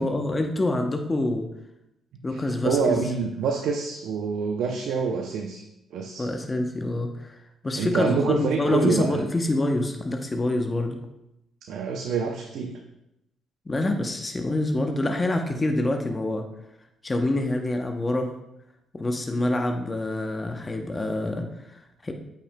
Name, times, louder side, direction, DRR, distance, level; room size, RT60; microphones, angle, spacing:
voice 1, 0.0-1.5 2.2-3.0 6.2-7.4 7.6-11.0 13.7-16.4 17.0-18.3 18.9-22.1, left 2 dB, 25° left, 4 dB, 0.7 m, -26 dB
voice 2, 2.3-5.6 5.9-6.3 7.8-9.3 11.7-12.8, right 5 dB, 80° right, 3 dB, 0.5 m, -26 dB
8.5 x 5.7 x 2.2 m, 0.84 s
cardioid pair, 90°, 0 cm